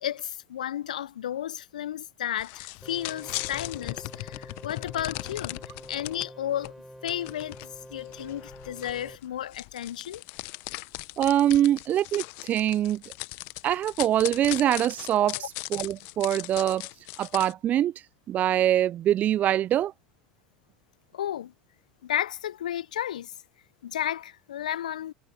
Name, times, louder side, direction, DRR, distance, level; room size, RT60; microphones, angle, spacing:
voice 1, 0.0-5.6 5.9-6.7 7.0-10.2 21.1-21.5 22.0-23.3 23.8-25.1, left 11 dB, 75° left, 0.6 m, -33 dB
sound 1, 2.4-6.3 6.6-6.7 7.1-17.5, left 28 dB, 60° left, 1.1 m, -39 dB
sound 2, 2.8-9.2, equal, ahead, 3.9 m, -47 dB
voice 2, 11.2-13.0 13.6-15.4 15.7-16.9 17.2-17.9 18.3-19.9, right 11 dB, 40° right, 0.5 m, -24 dB
figure-of-eight pair, 75°, 4 cm